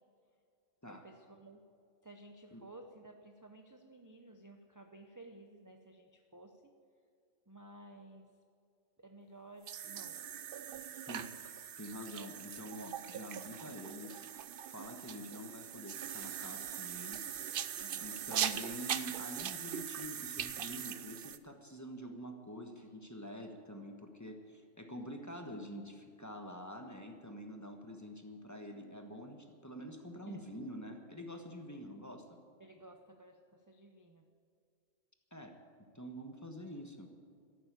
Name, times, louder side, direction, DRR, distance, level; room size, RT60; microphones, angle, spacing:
voice 1, 0.9-1.7 2.0-6.7 7.5-8.3 9.0-10.2 17.8-18.2 30.3-30.4 32.6-34.2, right 2 dB, 20° right, 4 dB, 0.7 m, -55 dB
sound 1, 9.6-21.4, right 9 dB, 55° right, 0.7 m, -41 dB
voice 2, 11.8-14.2 14.6-17.3 18.0-32.4 35.3-35.6 35.9-37.1, equal, 15° left, 4 dB, 1.3 m, -46 dB
13.5 x 12.0 x 8.4 m, 2.3 s
omnidirectional pair, 1.3 m